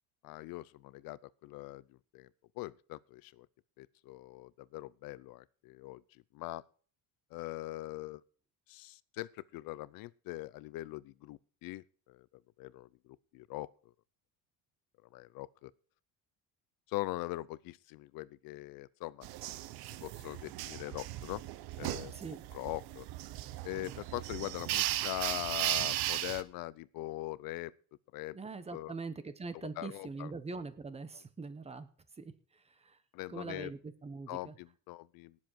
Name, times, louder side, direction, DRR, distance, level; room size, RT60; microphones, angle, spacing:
voice 1, 0.2-2.3 2.6-3.5 3.8-6.0 6.3-6.6 7.3-8.2 8.7-12.3 12.6-13.7 15.1-15.7 16.9-19.3 20.0-21.4 21.8-22.1 22.5-23.1 23.6-27.7 28.1-28.4 28.7-28.9 29.8-30.3 31.1-31.2 33.1-33.7 34.3-35.4, left 18 dB, 65° left, 0.7 m, -42 dB
sound 1, 19.2-26.4, right 15 dB, 80° right, 1.0 m, -37 dB
voice 2, 28.3-31.9 32.2-33.0 33.3-34.5, right 4 dB, 15° right, 1.1 m, -43 dB
18.0 x 7.5 x 4.6 m
cardioid pair, 155°, 37 cm